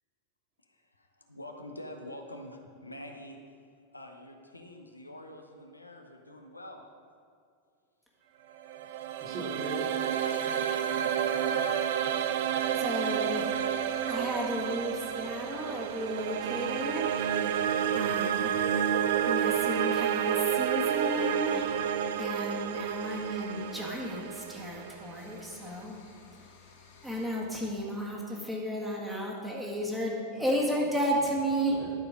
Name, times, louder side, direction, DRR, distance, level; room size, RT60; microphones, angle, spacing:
voice 1, 0.7-3.4 3.9-6.8 27.6-27.8 28.3-28.4, left 1 dB, 85° left, 3 dB, 0.8 m, -46 dB
sound 1, 8.6-25.7, right 9 dB, 55° right, 0.4 m, -30 dB
voice 2, 9.2-9.9 11.2-11.7 30.4-30.9 31.6-31.9, right 1 dB, 35° right, -2 dB, 2.1 m, -41 dB
sound 2, 12.6-27.3, left 5 dB, 55° left, 1.3 m, -55 dB
voice 3, 12.8-13.6 14.1-17.6 17.9-18.5 19.3-21.7 22.2-26.0 27.0-31.8, equal, 5° right, -3 dB, 1.8 m, -33 dB
12.0 x 4.9 x 5.2 m, 2.4 s
figure-of-eight pair, 90°, 0 cm